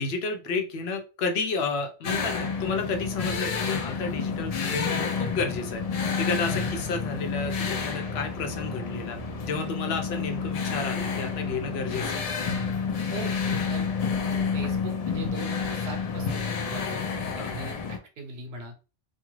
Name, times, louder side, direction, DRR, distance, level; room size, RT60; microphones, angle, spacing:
voice 1, 0.0-9.2 9.5-12.2 17.4-17.5, left 4 dB, 75° left, 4 dB, 0.9 m, -31 dB
sound 1, 2.0-18.0, left 5 dB, 55° left, 0.4 m, -29 dB
voice 2, 13.1-13.9 14.2-18.7, right 3 dB, 70° right, 4 dB, 0.9 m, -40 dB
2.4 x 2.3 x 3.1 m, 0.32 s
omnidirectional pair, 1.1 m